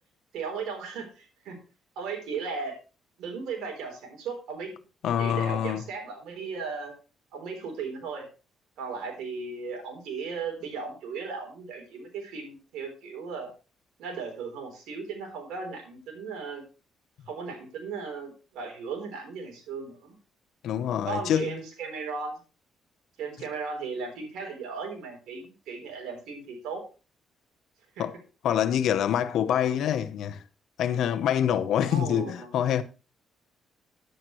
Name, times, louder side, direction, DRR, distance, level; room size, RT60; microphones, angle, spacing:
voice 1, 0.3-1.6 2.0-2.8 3.2-4.7 5.2-6.9 7.3-8.3 8.8-13.5 14.0-16.6 17.3-20.1 21.1-22.4 23.2-26.8 28.0-28.1 31.8-32.5, right 5 dB, 90° right, 3.8 m, -36 dB
voice 2, 5.0-5.8 20.6-21.6 28.0-28.2 28.4-30.4 30.8-32.8, left 9 dB, 75° left, 0.9 m, -26 dB
10.5 x 8.8 x 3.2 m
cardioid pair, 90°, 0 cm